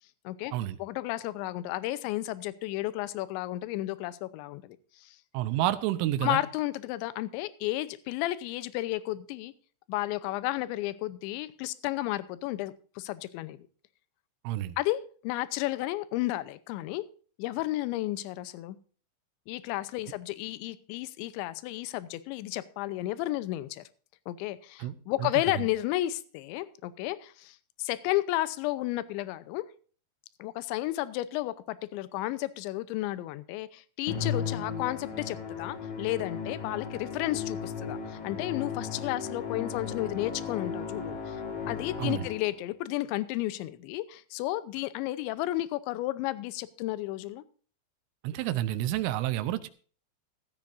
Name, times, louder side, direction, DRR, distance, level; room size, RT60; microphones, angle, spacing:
voice 1, 0.8-5.2 6.2-9.5 9.9-13.6 14.8-17.0 17.4-18.8 19.5-23.8 24.3-29.6 30.4-47.4, left 16 dB, 80° left, 15 dB, 3.0 m, -32 dB
voice 2, 5.3-6.4 14.5-14.8 24.8-24.9 25.2-25.3 42.0-42.3 48.2-49.7, right 14 dB, 90° right, 11 dB, 3.3 m, -29 dB
Musical instrument, 34.1-42.6, left 6 dB, 60° left, 1.6 m, -36 dB
15.0 x 13.5 x 2.6 m, 0.40 s
omnidirectional pair, 5.5 m